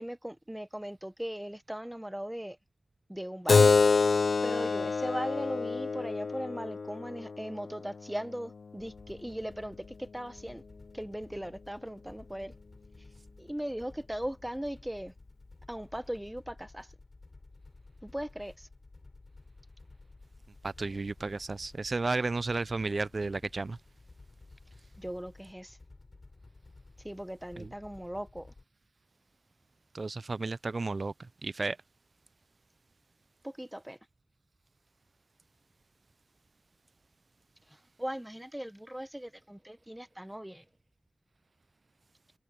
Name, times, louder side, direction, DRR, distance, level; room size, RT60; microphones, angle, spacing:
voice 1, 0.0-2.6 3.1-3.7 4.4-10.6 10.9-12.5 13.4-15.1 15.7-16.9 18.0-18.7 25.0-25.8 27.0-28.5 33.4-34.0 38.0-40.6, equal, 10° right, 1.0 m, -38 dB
Keyboard (musical), 3.5-8.6, left 4 dB, 90° left, 0.3 m, -27 dB
sound 1, 8.8-28.6, left 3 dB, 50° left, 7.5 m, -54 dB
voice 2, 20.6-23.8 27.6-27.7 29.9-31.8, right 3 dB, 60° right, 0.4 m, -33 dB
wide cardioid pair, 80°, 0 cm